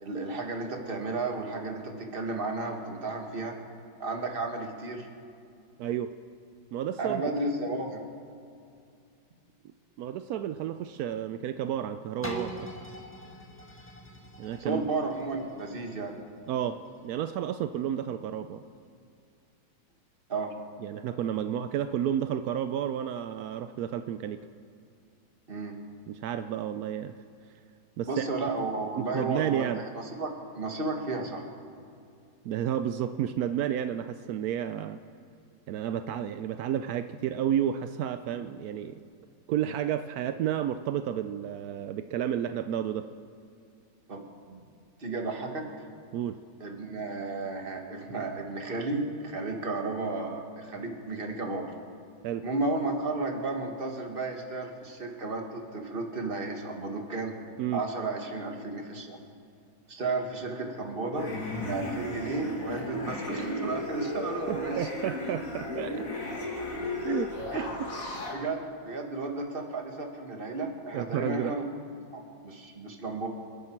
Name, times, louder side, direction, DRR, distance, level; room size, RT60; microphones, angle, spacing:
voice 1, 0.0-3.5 4.0-5.1 7.0-8.0 14.6-16.2 20.3-20.5 25.5-25.8 28.1-31.5 44.1-44.7 45.0-45.6 46.6-51.7 52.4-57.3 57.7-59.2 59.9-61.3 61.6-64.9 67.5-67.8 68.3-68.6 68.9-71.6 72.1-73.3, right 3 dB, 30° right, 2 dB, 1.7 m, -33 dB
voice 2, 5.8-6.1 6.7-7.2 10.0-12.7 14.4-14.8 16.5-18.6 20.8-24.4 26.1-27.1 28.0-28.2 29.0-29.8 32.4-35.0 35.7-39.0 39.5-43.1 46.1-46.4 52.2-52.5 57.6-57.8 64.5-66.1 67.0-67.9 70.9-71.5, right 10 dB, 80° right, 9 dB, 0.8 m, -31 dB
sound 1, 12.2-18.0 18.5-18.6, right 1 dB, 5° left, 1.3 m, -44 dB
sound 2, 61.2-68.3, left 1 dB, 45° left, 2.5 m, -34 dB
28.5 x 10.0 x 4.6 m, 2.4 s
omnidirectional pair, 2.1 m